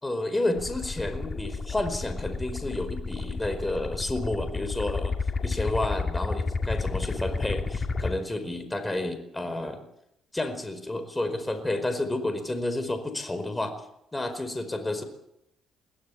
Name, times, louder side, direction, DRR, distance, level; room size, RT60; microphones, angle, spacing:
voice 1, 0.0-5.1 5.4-9.8 10.3-13.7 14.1-15.0, left 2 dB, 15° left, 8 dB, 4.7 m, -30 dB
sound 1, 0.6-8.1, left 4 dB, 40° left, 2.7 m, -31 dB
22.5 x 16.0 x 8.7 m, 0.78 s
cardioid pair, 90°, 0 cm